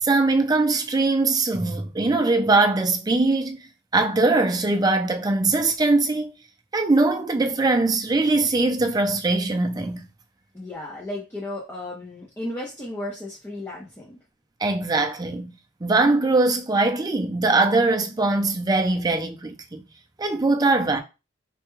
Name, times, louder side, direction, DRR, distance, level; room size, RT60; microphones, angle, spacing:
voice 1, 0.0-3.6 3.9-6.3 6.7-10.1 14.6-15.5 15.8-19.8 20.2-21.0, right 3 dB, 20° right, 0.5 m, -21 dB
voice 2, 10.5-14.2, left 1 dB, 15° left, 0.7 m, -34 dB
3.4 x 2.2 x 3.1 m
head